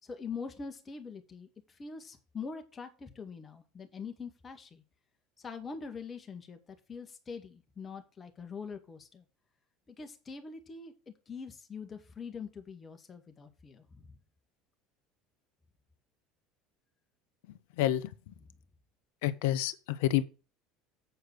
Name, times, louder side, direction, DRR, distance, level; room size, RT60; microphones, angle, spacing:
voice 1, 0.0-4.8 5.4-9.2 9.9-14.2, left 5 dB, 30° left, 2.0 m, -44 dB
voice 2, 17.8-18.3 19.2-20.2, left 13 dB, 70° left, 0.7 m, -29 dB
8.3 x 4.7 x 6.2 m
hypercardioid pair, 70°, 0 cm